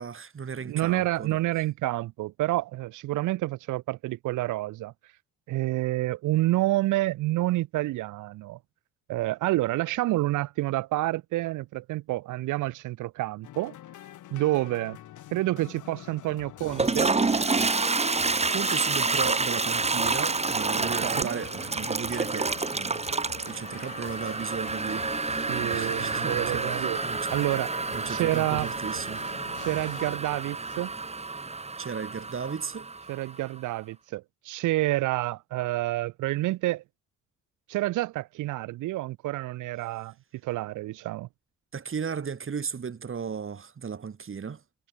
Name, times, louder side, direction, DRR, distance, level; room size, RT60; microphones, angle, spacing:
voice 1, 0.0-1.4 18.3-23.0 23.4-27.3 27.9-29.3 31.8-32.9 41.7-44.6, right 6 dB, 45° right, 7.7 m, -35 dB
voice 2, 0.7-4.9 5.5-8.6 9.1-13.8 14.3-15.0 15.3-17.1 20.8-21.4 25.5-27.0 27.3-27.7 28.1-28.7 29.6-30.9 33.1-36.8 37.7-40.1 40.4-41.3, right 17 dB, 85° right, 0.9 m, -28 dB
sound 1, 13.4-30.2, left 13 dB, 80° left, 4.2 m, -45 dB
Toilet flush, 16.6-33.4, right 3 dB, 20° right, 1.8 m, -29 dB
cardioid pair, 90°, 30 cm